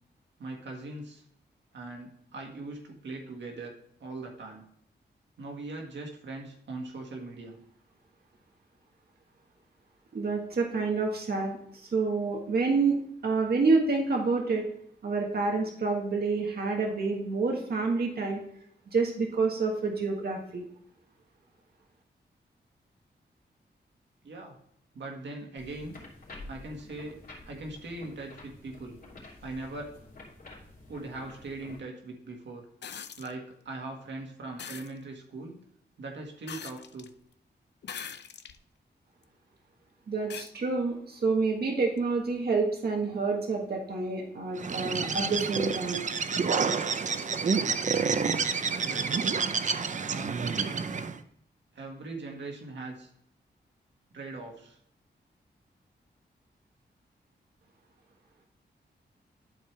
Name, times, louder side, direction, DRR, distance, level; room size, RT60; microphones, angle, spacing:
voice 1, 0.4-1.2 1.7-4.7 5.4-7.6 24.2-24.6 24.9-26.0 26.5-29.0 29.4-30.0 30.9-32.7 33.2-35.6 36.0-37.1 48.0-49.3 50.1-50.8 51.7-53.1 54.1-54.8, right 2 dB, 85° right, 1 dB, 1.8 m, -41 dB
voice 2, 10.1-12.9 13.2-14.7 15.0-18.4 18.9-20.7 40.1-46.1, right 4 dB, 60° right, 0 dB, 1.6 m, -28 dB
sound 1, 25.6-31.8, left 2 dB, 55° left, 3.2 m, -49 dB
sound 2, 32.8-33.3 34.6-34.9 36.5-37.1 37.8-38.6 39.2-39.3 40.3-40.5 42.0-42.1, left 7 dB, 70° left, 0.6 m, -41 dB
Bird, 44.6-51.2, right 5 dB, 45° right, 0.6 m, -29 dB
11.5 x 4.7 x 3.3 m, 0.70 s
wide cardioid pair, 110°, 18 cm